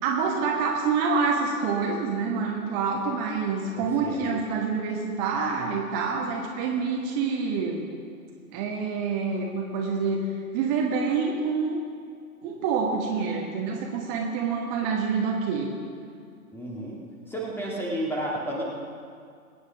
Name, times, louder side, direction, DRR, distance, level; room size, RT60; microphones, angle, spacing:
voice 1, 0.0-7.9 8.5-10.2 10.5-11.8 12.4-15.7, right 5 dB, 25° right, 0 dB, 1.4 m, -27 dB
voice 2, 3.7-4.3 16.5-17.0 17.3-18.6, right 1 dB, 5° left, -3 dB, 1.8 m, -32 dB
22.0 x 9.5 x 3.5 m, 2.2 s
figure-of-eight pair, 115°, 44 cm